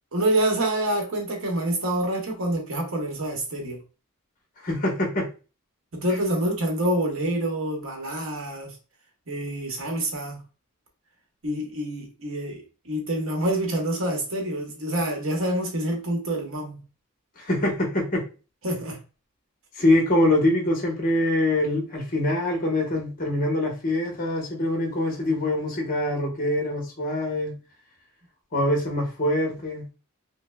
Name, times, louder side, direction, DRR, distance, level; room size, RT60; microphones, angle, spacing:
voice 1, 0.1-3.8 5.9-8.8 9.3-10.4 11.4-16.8 18.6-19.0, right 1 dB, 65° right, 1.0 m, -27 dB
voice 2, 4.6-5.3 17.4-18.2 19.8-27.6 28.5-29.9, left 1 dB, 40° left, 1.1 m, -24 dB
5.3 x 2.1 x 2.2 m
head